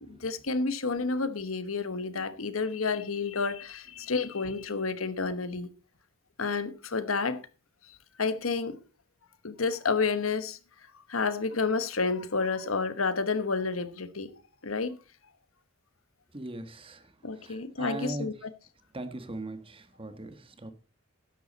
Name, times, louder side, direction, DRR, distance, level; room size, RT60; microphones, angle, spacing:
voice 1, 0.0-5.7 6.4-7.4 7.9-8.8 9.4-10.6 11.1-14.3 14.6-15.0 17.2-18.5, left 4 dB, 90° left, 1.2 m, -30 dB
voice 2, 16.3-17.0 17.4-18.3 18.9-20.7, right 2 dB, 25° right, 1.4 m, -39 dB
13.0 x 10.5 x 4.1 m
head